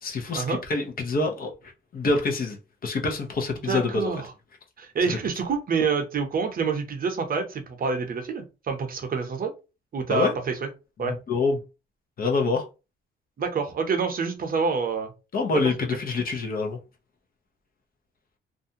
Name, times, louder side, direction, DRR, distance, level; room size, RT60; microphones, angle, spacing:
voice 1, 0.0-1.5 1.9-4.1 5.1-5.2 10.1-10.3 11.0-11.6 12.2-12.7 15.3-16.8, left 3 dB, 50° left, 0.7 m, -26 dB
voice 2, 3.7-4.3 4.8-9.5 9.9-10.7 11.0-11.2 13.4-15.1 15.5-15.6, right 5 dB, 45° right, 0.7 m, -27 dB
2.5 x 2.2 x 2.7 m
cardioid pair, 90°, 20 cm